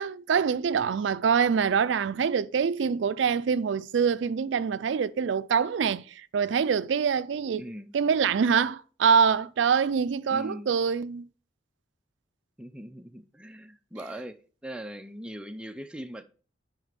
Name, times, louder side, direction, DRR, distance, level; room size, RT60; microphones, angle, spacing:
voice 1, 0.0-7.7 7.9-11.3, right 6 dB, 90° right, 0.4 m, -25 dB
voice 2, 7.6-7.9 10.3-10.7 12.6-14.3 14.6-16.2, equal, 5° right, 0.5 m, -40 dB
9.5 x 4.9 x 5.1 m
head